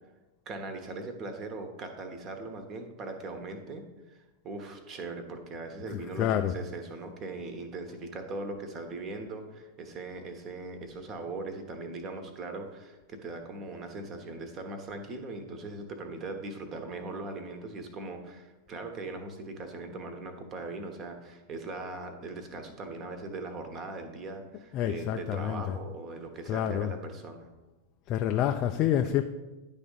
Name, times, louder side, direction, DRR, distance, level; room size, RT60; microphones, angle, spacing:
voice 1, 0.4-27.5, right 3 dB, 30° right, 6 dB, 1.2 m, -40 dB
voice 2, 5.9-6.5 24.7-25.8 26.5-26.9 28.1-29.2, left 11 dB, 35° left, 6 dB, 0.4 m, -28 dB
10.5 x 3.6 x 5.5 m, 1.1 s
figure-of-eight pair, 90°, 0 cm